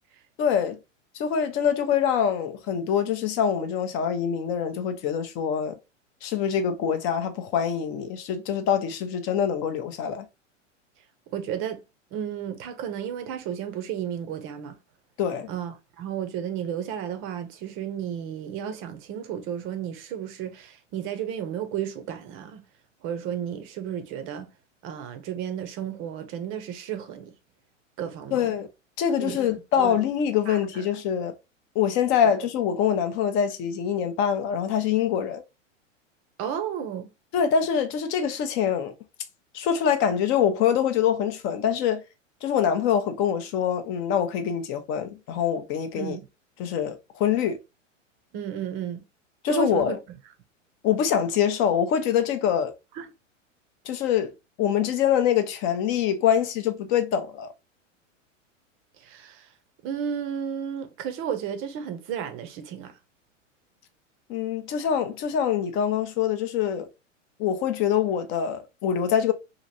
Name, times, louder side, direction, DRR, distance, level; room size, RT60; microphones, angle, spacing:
voice 1, 0.4-0.8 1.1-5.8 6.2-10.3 15.2-15.5 28.3-28.7 29.0-31.3 31.8-35.4 37.3-38.9 39.5-42.0 42.4-46.2 46.6-47.6 49.4-50.0 50.8-52.7 53.9-54.3 54.6-57.5 64.3-66.9 67.4-69.3, left 8 dB, 35° left, 0.5 m, -24 dB
voice 2, 11.3-11.8 12.1-14.8 15.5-22.6 23.0-24.5 24.8-27.3 28.0-28.5 29.2-29.4 29.8-30.0 30.5-30.8 36.4-37.1 46.0-46.3 48.3-49.0 49.5-50.0 52.9-53.1 59.0-59.5 59.8-63.0, right 9 dB, 35° right, 0.6 m, -33 dB
2.9 x 2.6 x 2.5 m
hypercardioid pair, 110°, 38 cm